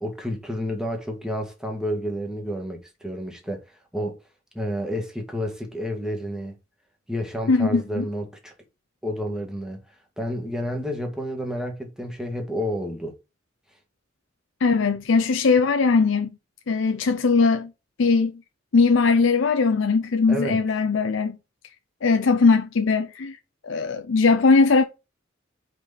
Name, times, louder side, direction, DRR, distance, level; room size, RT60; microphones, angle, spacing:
voice 1, 0.0-3.7 3.9-4.2 4.6-6.6 7.1-8.5 9.0-9.8 10.2-13.2 20.3-20.6, equal, 5° right, 1.7 m, -30 dB
voice 2, 7.5-8.1 14.6-16.3 16.7-17.7 18.0-18.3 18.7-21.4 22.0-23.4 23.6-24.8, left 4 dB, 70° left, 0.6 m, -20 dB
5.1 x 4.5 x 5.7 m
head